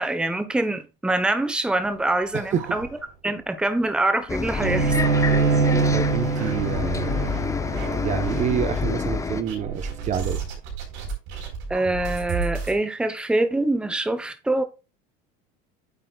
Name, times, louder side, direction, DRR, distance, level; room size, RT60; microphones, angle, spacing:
voice 1, 0.0-2.9 3.2-5.1 11.7-14.6, right 2 dB, 5° right, 1.0 m, -24 dB
sound 1, 1.9-3.4 3.8-3.9 4.2-4.3 4.9-5.8 6.3-7.4 7.7-8.4 9.5-12.8, right 5 dB, 65° right, 4.1 m, -34 dB
voice 2, 2.3-2.6 5.5-7.3 8.0-10.4, right 8 dB, 35° right, 0.9 m, -28 dB
Bus, 4.3-9.4, left 4 dB, 15° left, 0.7 m, -28 dB
Bowed string instrument, 4.6-9.9, right 4 dB, 80° right, 3.3 m, -24 dB
9.1 x 7.5 x 2.3 m
supercardioid pair, 125°, 21 cm